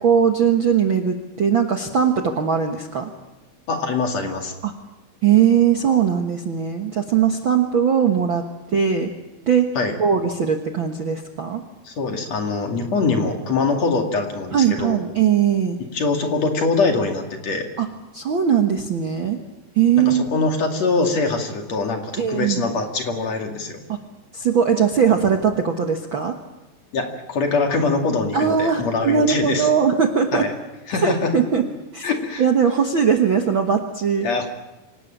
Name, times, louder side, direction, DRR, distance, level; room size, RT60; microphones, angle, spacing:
voice 1, 0.0-3.1 4.6-4.7 5.2-8.4 8.7-9.1 9.5-9.7 10.0-11.6 14.5-15.8 17.8-17.9 18.1-19.4 19.7-20.2 22.2-22.6 23.9-24.0 24.3-26.3 28.3-30.5 31.0-31.6 31.9-32.1 32.4-34.3, right 7 dB, 55° right, 4 dB, 1.5 m, -19 dB
voice 2, 3.7-4.5 9.7-9.9 11.8-15.0 15.9-17.7 19.9-23.8 26.9-29.7 30.3-30.5 30.9-31.3 32.0-32.4 34.2-34.5, left 3 dB, 50° left, 3 dB, 3.4 m, -23 dB
26.0 x 18.5 x 8.9 m, 1.0 s
omnidirectional pair, 4.0 m